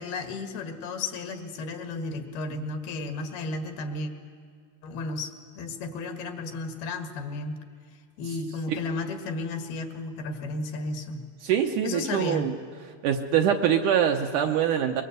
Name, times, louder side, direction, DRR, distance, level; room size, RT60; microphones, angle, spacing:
voice 1, 0.0-4.1 4.8-7.6 8.2-11.2 11.8-12.5, left 3 dB, 75° left, 6 dB, 3.6 m, -33 dB
voice 2, 11.4-12.5 13.0-15.0, right 9 dB, 70° right, 4 dB, 2.1 m, -24 dB
23.0 x 22.5 x 8.1 m, 2.1 s
omnidirectional pair, 4.4 m